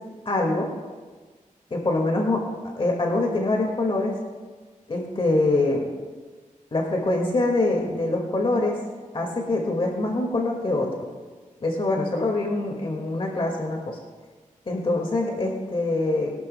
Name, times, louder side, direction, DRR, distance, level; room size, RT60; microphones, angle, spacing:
voice 1, 0.3-0.7 1.7-2.4 2.8-4.1 4.9-5.9 6.7-8.8 9.1-10.9 11.6-14.0 14.7-16.3, left 2 dB, 40° left, 0 dB, 1.9 m, -24 dB
21.5 x 12.0 x 2.2 m, 1.4 s
wide cardioid pair, 110°, 14 cm